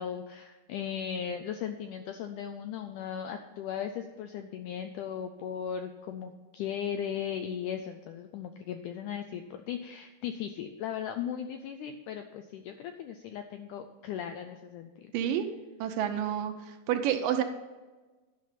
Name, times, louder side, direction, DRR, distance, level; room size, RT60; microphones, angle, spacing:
voice 1, 0.0-15.1, left 8 dB, 85° left, 6 dB, 1.8 m, -37 dB
voice 2, 15.1-15.5 15.8-16.5 16.9-17.4, right 10 dB, 75° right, 6 dB, 2.2 m, -28 dB
11.5 x 5.8 x 5.7 m, 1.2 s
omnidirectional pair, 4.2 m